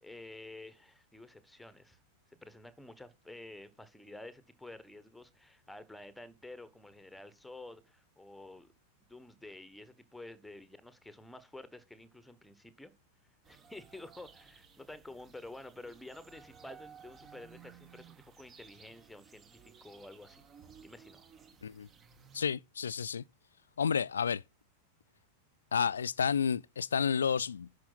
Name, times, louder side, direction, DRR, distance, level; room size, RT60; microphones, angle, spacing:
voice 1, 0.0-2.0 2.3-8.7 9.0-12.9 13.5-20.4 20.8-21.3, left 2 dB, 5° left, 1.4 m, -50 dB
sound 1, 13.4-22.5, right 7 dB, 25° right, 1.5 m, -57 dB
voice 2, 22.3-23.2 23.8-24.4 25.7-27.8, left 7 dB, 70° left, 0.4 m, -31 dB
11.0 x 5.4 x 4.1 m
figure-of-eight pair, 90°, 0 cm